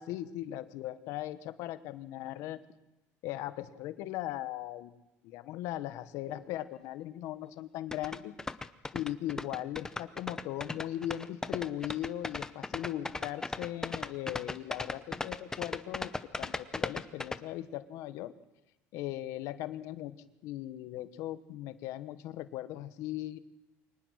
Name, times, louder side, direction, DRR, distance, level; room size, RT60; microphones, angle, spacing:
voice 1, 0.0-2.6 3.2-4.9 5.2-8.4 8.9-18.3 18.9-23.4, left 13 dB, 70° left, 12 dB, 1.1 m, -38 dB
sound 1, 7.9-17.4, left 3 dB, 10° left, 0.8 m, -36 dB
24.0 x 19.5 x 6.4 m, 0.95 s
cardioid pair, 140°, 5 cm